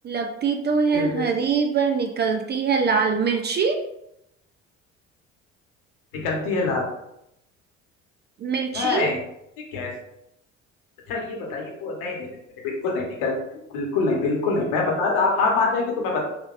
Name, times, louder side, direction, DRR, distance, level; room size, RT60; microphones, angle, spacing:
voice 1, 0.0-3.8 8.4-9.1, right 5 dB, 30° right, 5 dB, 0.4 m, -23 dB
voice 2, 0.9-1.2 6.1-6.9 8.7-9.2 9.7-9.9 11.1-12.3 12.6-13.4 13.7-16.2, left 3 dB, 65° left, 0 dB, 1.2 m, -24 dB
3.6 x 3.3 x 2.5 m, 0.80 s
figure-of-eight pair, 55°, 38 cm